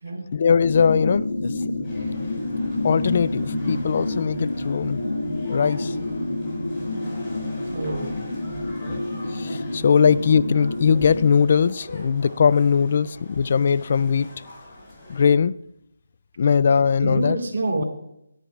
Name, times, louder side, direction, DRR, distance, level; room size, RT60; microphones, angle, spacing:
voice 1, 0.3-1.5 2.8-5.0 5.5-5.9 9.3-14.3 15.1-15.5 16.4-17.4, left 6 dB, 45° left, 0.3 m, -20 dB
sound 1, 0.6-11.3, left 2 dB, 70° left, 1.7 m, -28 dB
sound 2, 1.8-15.3, left 1 dB, 20° left, 5.5 m, -43 dB
voice 2, 7.7-8.2 17.0-17.9, right 2 dB, 55° right, 3.7 m, -27 dB
18.0 x 11.5 x 2.4 m
figure-of-eight pair, 160°, 0 cm